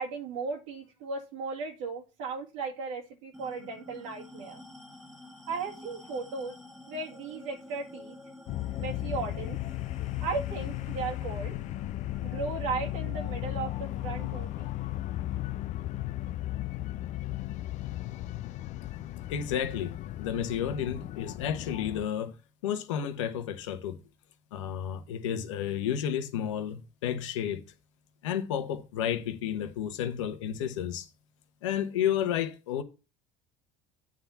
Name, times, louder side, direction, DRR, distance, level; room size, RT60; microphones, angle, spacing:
voice 1, 0.0-4.6 5.5-6.5 6.9-8.2 8.8-9.6 10.2-11.6 12.2-14.7, right 4 dB, 80° right, 2.0 m, -36 dB
sound 1, 3.3-18.2, left 2 dB, ahead, 1.5 m, -51 dB
sound 2, 8.5-22.1, left 15 dB, 50° left, 0.5 m, -35 dB
voice 2, 19.3-22.3 22.6-24.0 24.5-27.6 28.2-31.1 31.6-32.8, left 9 dB, 85° left, 1.0 m, -31 dB
8.7 x 3.6 x 5.6 m
supercardioid pair, 85°, 15 cm